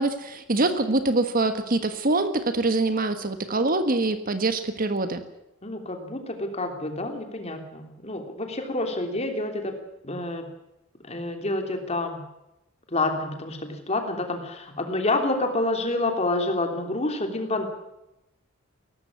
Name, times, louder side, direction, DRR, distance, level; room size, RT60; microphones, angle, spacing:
voice 1, 0.0-5.2, right 2 dB, 45° right, 9 dB, 1.5 m, -24 dB
voice 2, 5.6-9.7 10.0-10.5 11.0-12.2 12.9-17.6, left 2 dB, 30° left, 5 dB, 3.2 m, -28 dB
18.0 x 15.0 x 9.8 m, 0.90 s
head